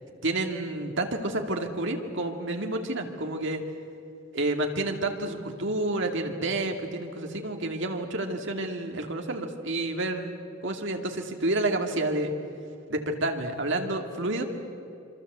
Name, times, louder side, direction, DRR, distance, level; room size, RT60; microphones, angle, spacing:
voice 1, 0.2-3.6 4.3-12.3 12.9-14.4, right 2 dB, 60° right, 3 dB, 2.4 m, -29 dB
26.5 x 24.5 x 8.1 m, 2.6 s
head